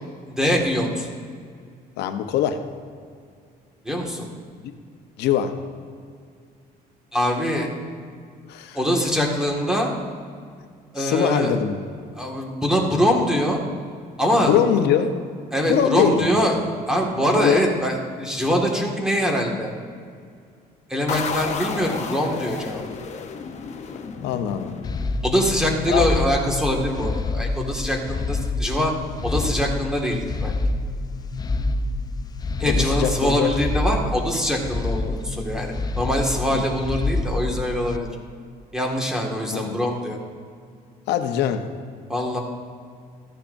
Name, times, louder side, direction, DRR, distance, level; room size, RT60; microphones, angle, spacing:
voice 1, 0.3-1.1 3.8-4.3 7.1-7.7 8.7-9.9 10.9-11.5 12.2-13.6 14.2-14.5 15.5-16.6 16.9-19.7 20.9-22.8 25.2-28.9 29.2-30.5 32.6-38.1 38.7-40.2 42.1-42.4, equal, 5° right, 0 dB, 1.9 m, -23 dB
voice 2, 2.0-2.6 5.2-5.6 8.5-8.8 11.0-11.8 14.4-15.2 15.7-16.3 17.3-17.6 24.2-24.7 25.9-26.1 32.6-33.5 36.5-36.6 39.5-39.8 41.1-41.6, left 9 dB, 85° left, 8 dB, 0.9 m, -22 dB
sound 1, 21.1-25.6, left 6 dB, 45° left, 0.9 m, -32 dB
sound 2, 24.8-38.0, left 3 dB, 25° left, 0.4 m, -27 dB
14.5 x 10.0 x 2.6 m, 2.2 s
cardioid pair, 110°, 17 cm